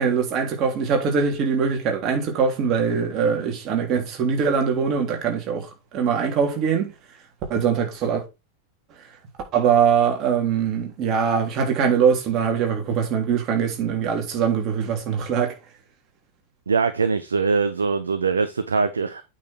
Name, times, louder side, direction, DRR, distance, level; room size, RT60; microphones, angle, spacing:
voice 1, 0.0-6.9 7.5-8.2 9.5-15.6, right 6 dB, 35° right, 3.3 m, -22 dB
voice 2, 16.7-19.2, right 4 dB, 75° right, 0.8 m, -22 dB
8.6 x 5.8 x 4.5 m
figure-of-eight pair, 90°, 0 cm